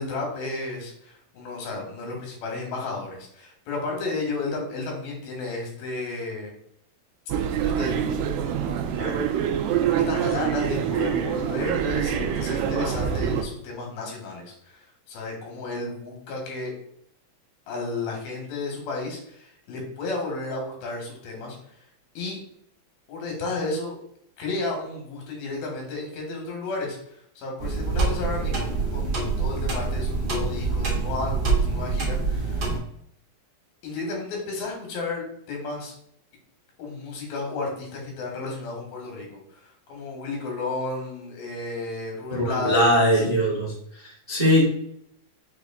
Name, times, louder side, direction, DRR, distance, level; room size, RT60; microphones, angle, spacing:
voice 1, 0.0-6.5 7.6-8.1 8.4-8.7 9.0-9.2 10.1-16.7 17.7-21.6 22.1-22.4 23.1-24.0 24.4-32.7 33.8-35.9 36.8-43.2, left 3 dB, 90° left, 0 dB, 3.2 m, -33 dB
sound 1, 7.3-13.4, right 8 dB, 80° right, 1.9 m, -25 dB
sound 2, 27.6-32.8, right 3 dB, 55° right, 1.1 m, -25 dB
voice 2, 42.3-44.7, equal, 35° right, -7 dB, 0.8 m, -21 dB
6.3 x 2.4 x 3.5 m, 0.71 s
omnidirectional pair, 4.0 m